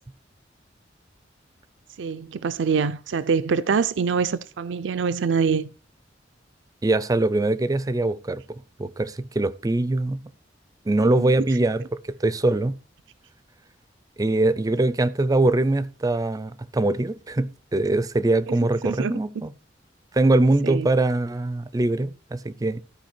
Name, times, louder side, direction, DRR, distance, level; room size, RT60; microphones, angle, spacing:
voice 1, 2.0-5.7 11.2-11.3 18.8-19.1 20.6-20.9, right 5 dB, 75° right, 0.4 m, -24 dB
voice 2, 6.8-8.4 8.8-10.2 10.9-11.8 12.2-12.7 14.2-19.5 20.1-22.8, right 2 dB, 20° right, 0.4 m, -22 dB
13.5 x 5.0 x 4.4 m
head